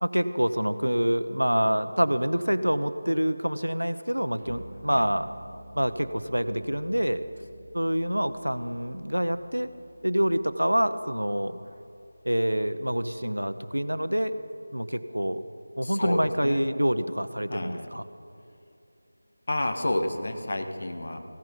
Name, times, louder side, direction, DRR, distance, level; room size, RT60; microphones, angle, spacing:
voice 1, 0.0-5.3 5.8-7.2 7.7-9.7 10.0-11.6 12.2-14.4 14.7-15.4 15.8-18.0, equal, 90° right, 12 dB, 0.7 m, -26 dB
sound 1, 4.4-14.4, right 1 dB, 45° right, 2.3 m, -51 dB
voice 2, 15.8-16.7 17.5-17.9 19.5-21.2, left 1 dB, 50° left, 5 dB, 1.3 m, -30 dB
16.0 x 12.5 x 5.3 m, 2.6 s
figure-of-eight pair, 165°, 0 cm